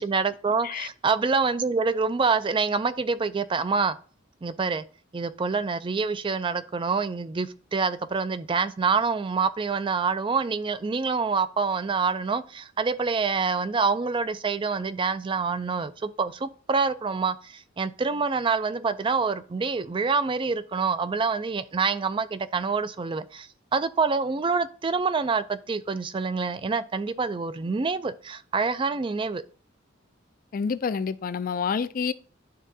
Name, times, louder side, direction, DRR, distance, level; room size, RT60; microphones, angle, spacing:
voice 1, 0.0-4.0 4.4-4.8 5.1-29.4, right 4 dB, 25° right, 0.4 m, -26 dB
voice 2, 30.5-32.1, left 6 dB, 45° left, 0.4 m, -28 dB
11.0 x 3.7 x 2.7 m
head